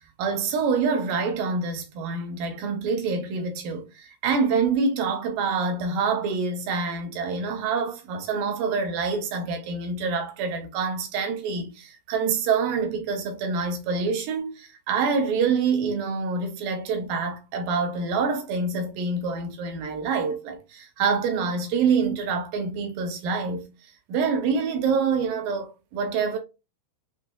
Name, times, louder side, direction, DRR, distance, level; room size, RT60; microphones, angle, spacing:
voice 1, 0.2-23.7 24.1-26.4, right 5 dB, 75° right, 2.4 m, -26 dB
6.3 x 2.3 x 2.2 m
omnidirectional pair, 4.2 m